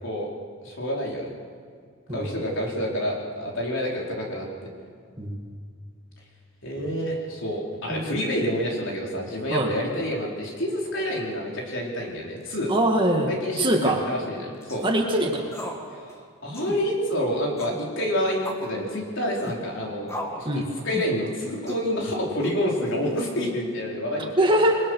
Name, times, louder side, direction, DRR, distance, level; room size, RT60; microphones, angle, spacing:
voice 1, 0.6-1.3 2.1-4.5 6.6-12.7 13.3-14.8 15.9-24.3, equal, 60° left, -2 dB, 4.5 m, -28 dB
voice 2, 12.7-14.0 14.8-15.5 20.5-20.7 24.4-24.8, right 1 dB, 20° right, 1 dB, 2.1 m, -23 dB
sound 1, 14.6-14.9 15.5-15.8 16.1-16.2 16.5-16.8 17.6-17.8 18.4-18.7 19.4-19.6 20.1-20.5 20.9-21.2 21.7-21.9 22.4-22.9, equal, 15° left, 2.1 m, -35 dB
28.0 x 21.0 x 6.5 m, 2.1 s
head